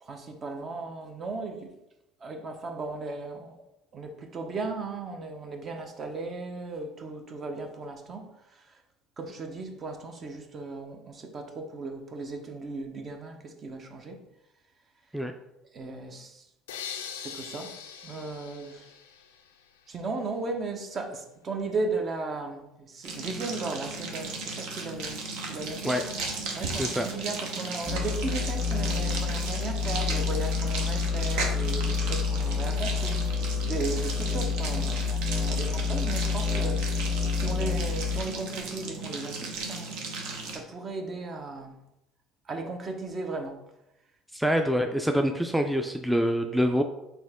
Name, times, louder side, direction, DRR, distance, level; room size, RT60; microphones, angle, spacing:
voice 1, 0.0-1.7 2.2-3.6 3.9-8.2 8.5-8.8 9.2-14.2 15.7-16.5 17.2-17.7 18.0-18.9 19.9-26.0 26.5-35.2 35.5-40.2 40.5-41.8 42.5-43.6 44.4-44.5, right 3 dB, 40° right, 4 dB, 0.8 m, -36 dB
sound 1, 16.7-19.7, left 7 dB, 85° left, 0.3 m, -41 dB
sound 2, 23.0-40.6, right 3 dB, 70° right, 0.8 m, -35 dB
voice 2, 26.8-27.1 44.3-46.8, equal, ahead, 4 dB, 0.4 m, -25 dB
sound 3, 27.9-38.2, left 6 dB, 25° right, 1.5 m, -28 dB
4.2 x 2.8 x 3.5 m, 0.89 s
hypercardioid pair, 70°, 0 cm